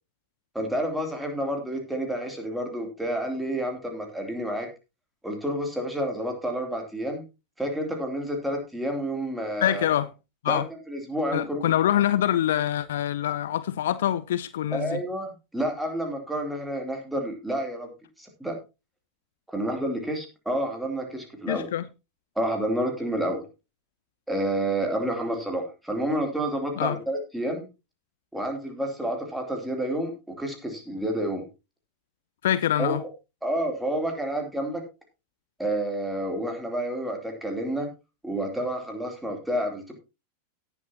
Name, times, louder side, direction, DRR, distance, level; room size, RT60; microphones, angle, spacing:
voice 1, 0.5-4.7 5.2-7.2 7.6-9.9 10.5-10.6 10.9-11.6 14.7-17.9 18.2-18.6 19.5-21.7 22.4-23.4 24.3-27.7 28.3-31.4 32.8-33.1 33.4-34.8 35.6-37.9 38.2-39.9, right 1 dB, 5° right, 2.9 m, -29 dB
voice 2, 9.6-10.1 10.4-10.7 11.3-15.0 21.5-21.9 26.8-27.0 32.4-33.0, left 11 dB, 60° left, 0.5 m, -25 dB
17.5 x 7.2 x 2.9 m
figure-of-eight pair, 90°, 0 cm